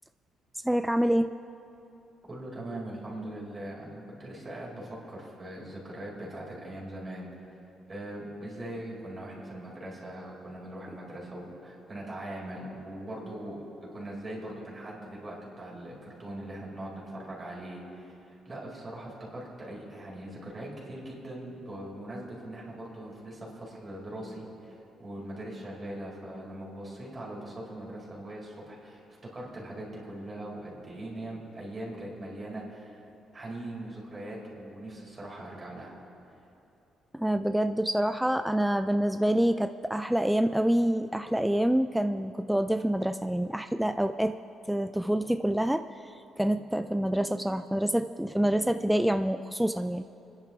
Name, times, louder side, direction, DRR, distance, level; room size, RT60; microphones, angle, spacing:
voice 1, 0.6-1.3 37.1-44.4 44.7-50.0, right 1 dB, 5° right, 8 dB, 0.3 m, -27 dB
voice 2, 2.3-7.3 7.9-18.1 18.4-33.0 33.3-35.9, right 1 dB, 30° right, -4 dB, 4.3 m, -41 dB
29.0 x 10.5 x 3.6 m, 2.8 s
cardioid pair, 90°, 0 cm